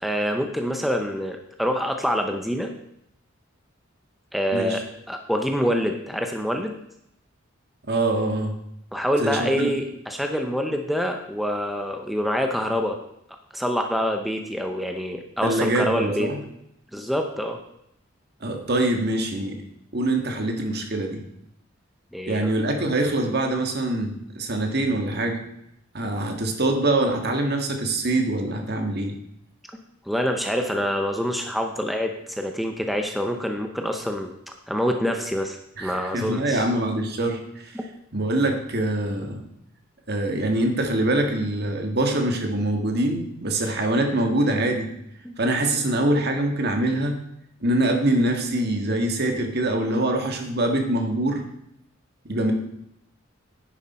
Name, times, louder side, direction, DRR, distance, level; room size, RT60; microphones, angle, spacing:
voice 1, 0.0-2.7 4.3-4.8 5.1-6.7 8.9-13.0 13.5-16.3 16.9-17.6 22.1-22.5 30.1-34.3 34.7-36.6 37.7-37.8 45.2-45.3, equal, ahead, 4 dB, 0.7 m, -26 dB
voice 2, 4.5-4.8 7.9-8.6 9.2-9.7 15.4-16.4 18.4-19.6 19.9-21.2 22.3-25.4 25.9-29.1 35.8-37.8 38.1-39.4 40.1-44.9 45.4-47.2 47.6-51.4 52.3-52.5, right 1 dB, 55° right, 4 dB, 1.8 m, -24 dB
10.0 x 9.8 x 4.3 m, 0.77 s
head